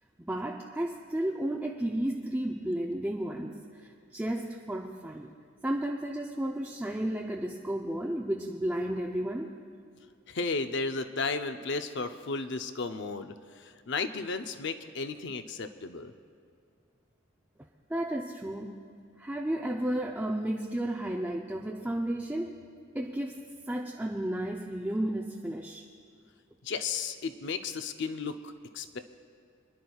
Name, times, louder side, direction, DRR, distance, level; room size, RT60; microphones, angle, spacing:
voice 1, 0.2-5.3 5.6-9.6 17.9-18.8 19.2-22.6 22.9-25.8, right 1 dB, 10° right, -1 dB, 0.5 m, -33 dB
voice 2, 10.3-16.1 26.6-29.0, left 4 dB, 60° left, 8 dB, 0.6 m, -34 dB
28.5 x 11.0 x 2.4 m, 2.4 s
head